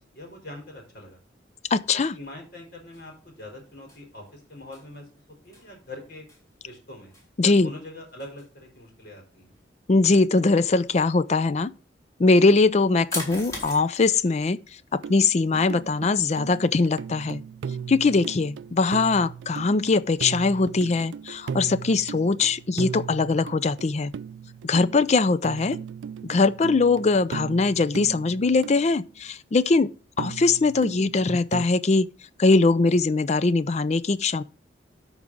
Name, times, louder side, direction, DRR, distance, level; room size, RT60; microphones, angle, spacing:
voice 1, 0.1-1.2 1.9-5.0 5.4-6.2 6.6-7.1 7.4-9.5, left 1 dB, 60° left, 4.1 m, -43 dB
voice 2, 1.7-2.1 7.4-7.7 9.9-11.7 12.2-14.6 14.9-17.4 17.9-24.1 24.6-25.8 26.2-29.9 30.2-32.1 32.4-34.4, left 3 dB, 40° left, 0.4 m, -21 dB
sound 1, 2.9-19.9, left 1 dB, 15° left, 3.7 m, -45 dB
sound 2, 15.0-16.1 16.4-29.0 30.2-31.7, right 7 dB, 80° right, 0.3 m, -37 dB
12.5 x 4.8 x 3.9 m
head